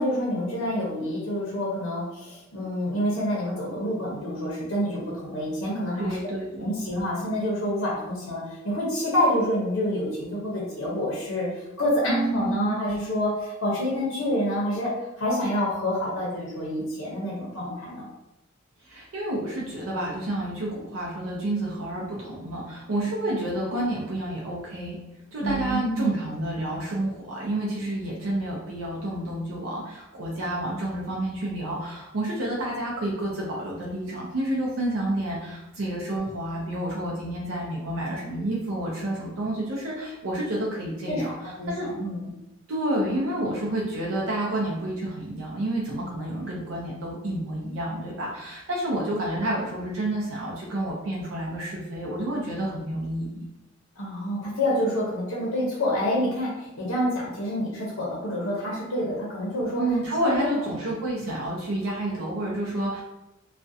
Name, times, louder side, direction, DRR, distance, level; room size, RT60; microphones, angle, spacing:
voice 1, 0.0-6.2 6.6-14.9 15.2-18.1 25.4-26.2 41.1-41.3 41.6-42.3 54.0-59.8 60.2-60.5, left 1 dB, 85° left, -4 dB, 0.7 m, -27 dB
voice 2, 6.0-6.7 12.1-12.7 18.8-25.0 25.3-41.9 42.7-53.5 59.8-63.0, right 1 dB, 90° right, -4 dB, 0.5 m, -29 dB
2.3 x 2.1 x 2.6 m, 0.92 s
head